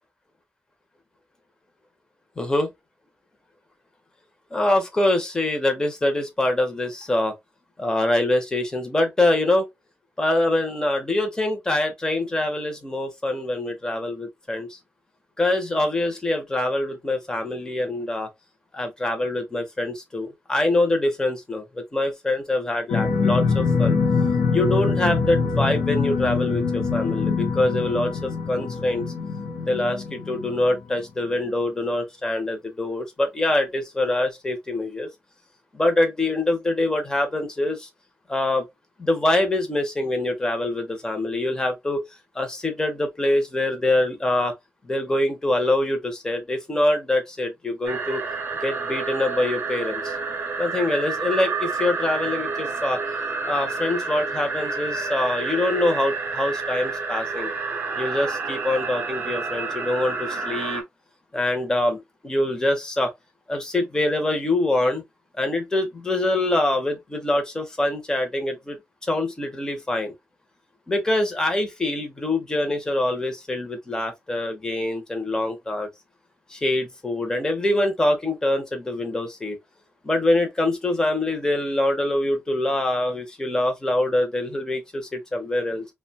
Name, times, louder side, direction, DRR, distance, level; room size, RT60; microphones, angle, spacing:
voice 1, 2.4-2.7 4.5-7.3 7.8-9.7 10.2-14.8 15.4-18.3 18.7-24.0 24.5-29.0 29.7-35.1 35.7-37.9 38.3-38.7 39.0-42.0 42.3-44.5 44.8-48.2 48.6-50.1 50.6-53.0 53.5-57.5 58.0-60.8 61.3-63.1 63.5-65.0 65.4-70.1 70.9-75.9 76.5-79.6 80.0-85.9, left 1 dB, 15° left, 0.7 m, -24 dB
sound 1, 22.9-31.0, left 5 dB, 75° left, 0.6 m, -24 dB
sound 2, 47.9-60.8, right 4 dB, 55° right, 0.6 m, -29 dB
2.6 x 2.2 x 2.7 m
wide cardioid pair, 155°, 4 cm